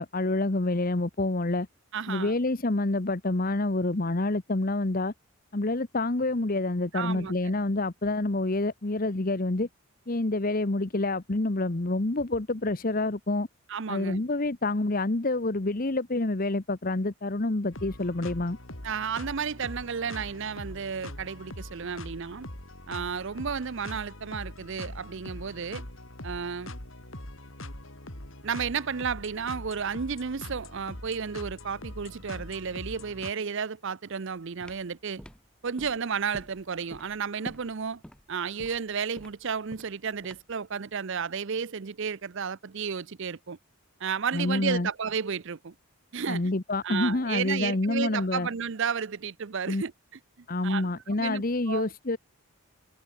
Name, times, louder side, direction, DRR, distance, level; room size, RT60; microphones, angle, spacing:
voice 1, 0.0-1.7 2.1-5.1 5.5-9.7 10.1-13.5 13.9-18.6 44.3-44.9 46.3-48.5 49.7-49.8 50.5-52.2, left 2 dB, 40° left, 1.0 m, -27 dB
voice 2, 1.9-2.3 6.9-7.5 13.7-14.2 18.8-22.5 22.9-25.8 26.2-26.7 28.4-35.2 35.6-38.0 38.3-43.6 44.0-45.7 46.1-46.5 46.8-49.9 50.4-51.9, right 6 dB, 55° right, 0.6 m, -32 dB
sound 1, 17.7-33.3, left 1 dB, 60° left, 5.2 m, -42 dB
sound 2, 34.4-40.6, equal, 5° left, 1.7 m, -47 dB
head